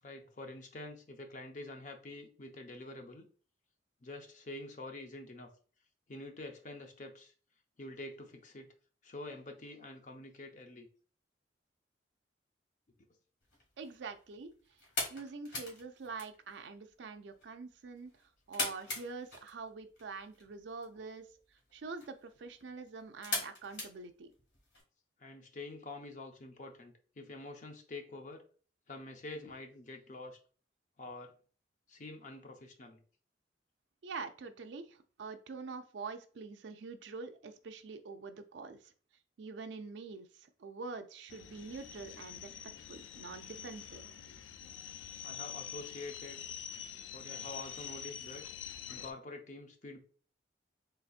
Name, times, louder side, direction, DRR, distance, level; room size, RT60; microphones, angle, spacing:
voice 1, 0.0-3.3 4.0-5.5 6.1-7.3 7.8-8.7 9.0-10.9 25.2-28.4 28.9-30.4 31.0-31.3 31.9-33.0 45.2-46.4 47.1-48.5 48.9-50.0, left 2 dB, 40° left, 4 dB, 0.6 m, -47 dB
sound 1, 13.4-24.8, left 2 dB, 70° left, 1.5 m, -43 dB
voice 2, 13.8-14.5 15.1-18.1 18.5-21.2 21.7-24.3 34.0-38.9 39.4-42.5 42.9-44.0, right 4 dB, 70° right, 8 dB, 0.4 m, -45 dB
sound 2, 41.3-49.1, left 9 dB, 85° left, 0.4 m, -46 dB
4.0 x 3.3 x 2.4 m, 0.41 s
head